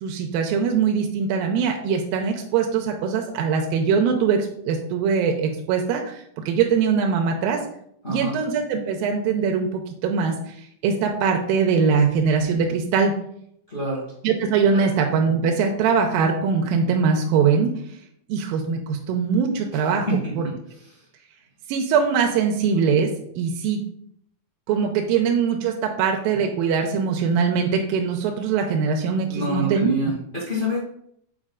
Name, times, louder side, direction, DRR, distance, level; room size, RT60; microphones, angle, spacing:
voice 1, 0.0-7.6 8.1-10.6 10.8-13.1 14.2-17.7 18.3-20.1 20.3-20.5 21.7-23.8 24.7-29.9, right 6 dB, 90° right, 3 dB, 2.4 m, -22 dB
voice 2, 13.7-14.0 14.7-14.8 19.9-20.6 29.3-30.8, right 1 dB, 25° left, -4 dB, 1.0 m, -26 dB
7.4 x 4.8 x 3.8 m, 0.70 s
omnidirectional pair, 4.1 m